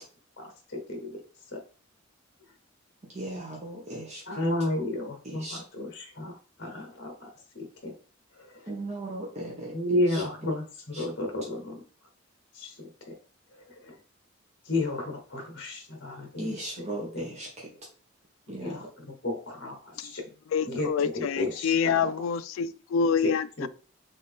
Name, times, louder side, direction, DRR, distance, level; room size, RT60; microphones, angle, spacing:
voice 1, 0.4-1.1 4.3-6.3 6.6-7.3 7.5-7.9 8.4-8.5 9.7-10.6 10.9-11.8 12.5-12.9 13.8-13.9 14.7-16.5 17.1-17.2 18.6-18.8 19.2-20.2 20.6-22.1 23.2-23.7, left 1 dB, 55° left, 1.0 m, -32 dB
voice 2, 3.1-4.8 5.2-5.6 8.7-10.6 10.9-11.1 16.4-17.8 18.5-18.9, right 1 dB, 35° right, 1.1 m, -38 dB
voice 3, 20.5-23.7, left 6 dB, 75° left, 0.3 m, -27 dB
4.0 x 3.7 x 3.5 m
head